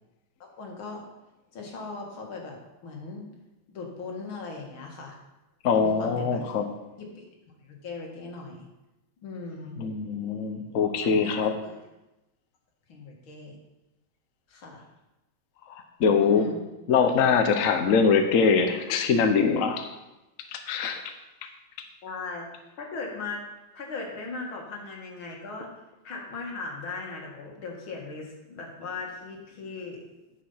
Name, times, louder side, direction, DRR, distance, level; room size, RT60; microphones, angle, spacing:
voice 1, 0.4-1.0 1.5-3.3 3.7-5.2 5.7-6.4 7.0-7.2 7.6-8.7 9.2-9.8 11.0-11.7 12.9-13.6 14.5-14.8 16.2-16.6 22.0-22.5 22.8-23.5 23.7-25.7 26.0-30.0, left 3 dB, 75° left, 0 dB, 2.5 m, -38 dB
voice 2, 5.6-6.6 9.8-11.5 15.7-16.5 16.9-19.9 20.5-21.1, left 5 dB, 55° left, 6 dB, 1.0 m, -23 dB
9.6 x 6.5 x 5.6 m, 0.99 s
omnidirectional pair, 2.2 m